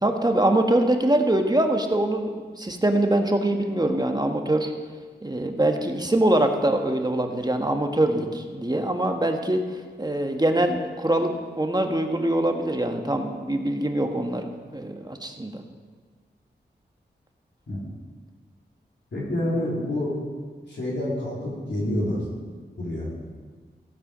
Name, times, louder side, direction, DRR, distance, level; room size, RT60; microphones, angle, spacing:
voice 1, 0.0-4.7 5.2-9.6 10.0-15.6, right 1 dB, 20° right, 4 dB, 1.4 m, -23 dB
voice 2, 19.1-20.1 20.7-22.2 22.8-23.1, left 1 dB, 70° left, -5 dB, 3.7 m, -27 dB
16.0 x 8.0 x 5.1 m, 1.5 s
cardioid pair, 50°, 19 cm